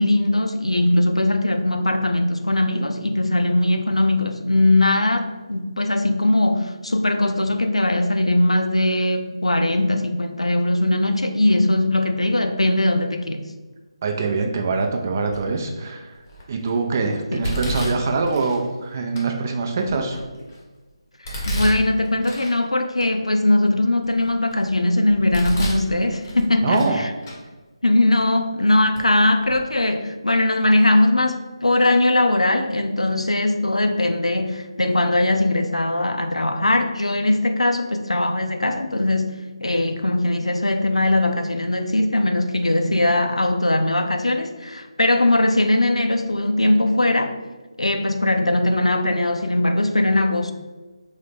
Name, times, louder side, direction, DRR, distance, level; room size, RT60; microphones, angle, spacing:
voice 1, 0.0-13.4 17.3-17.5 21.4-27.1 27.8-47.3 47.8-50.5, left 1 dB, 90° left, 6 dB, 0.4 m, -20 dB
voice 2, 14.0-16.2 16.5-20.2 26.6-27.0, right 4 dB, 30° right, 3 dB, 0.4 m, -24 dB
Domestic sounds home sounds, 15.3-15.7 16.3-16.7 17.4-18.6 19.2-19.3 19.8-20.6 21.2-22.6 23.0-23.1 23.7-24.6 25.1-25.9 26.2-27.0 27.2-27.4 28.2-28.3 28.9-29.1 29.4-29.6, equal, 30° left, 0.7 m, -30 dB
3.7 x 2.0 x 3.3 m, 1.2 s
figure-of-eight pair, 155°, 3 cm